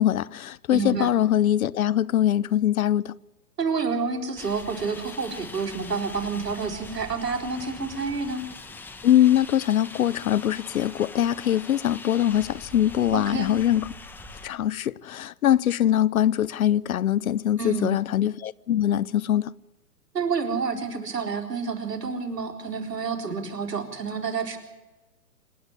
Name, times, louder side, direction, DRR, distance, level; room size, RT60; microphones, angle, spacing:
voice 1, 0.0-3.2 9.0-13.9 14.4-19.5, left 11 dB, 60° left, 0.7 m, -22 dB
voice 2, 0.7-1.1 3.6-8.4 13.1-13.5 17.6-18.0 20.1-24.6, right 5 dB, 80° right, 4.2 m, -29 dB
sound 1, 4.4-14.5, left 3 dB, 5° left, 1.0 m, -42 dB
27.0 x 11.0 x 9.8 m
hypercardioid pair, 135°, 47 cm